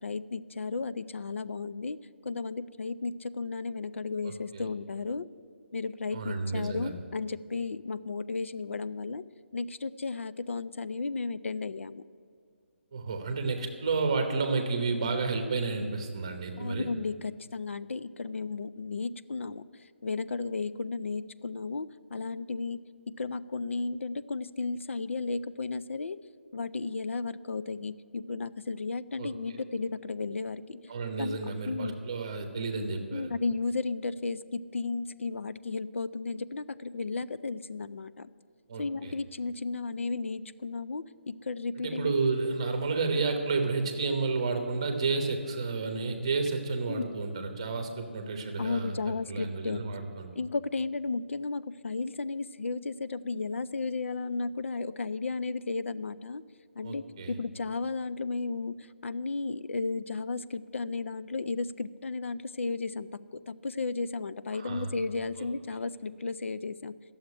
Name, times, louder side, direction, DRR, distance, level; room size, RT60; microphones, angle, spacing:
voice 1, 0.0-2.0 2.2-5.3 5.7-9.2 9.5-12.0 16.6-22.8 23.2-26.2 26.5-30.8 31.2-31.9 33.1-38.3 38.8-42.1 46.9-47.1 48.6-49.9 50.3-56.4 56.8-67.0, left 4 dB, 80° left, 15 dB, 0.5 m, -34 dB
voice 2, 4.2-4.6 6.1-6.9 12.9-16.9 29.2-29.3 30.9-33.3 38.7-39.1 41.8-50.3 56.8-57.3 64.5-64.9 65.4-65.5, right 4 dB, 25° right, 5 dB, 1.0 m, -31 dB
11.5 x 7.2 x 9.8 m, 2.2 s
hypercardioid pair, 180°, 7 cm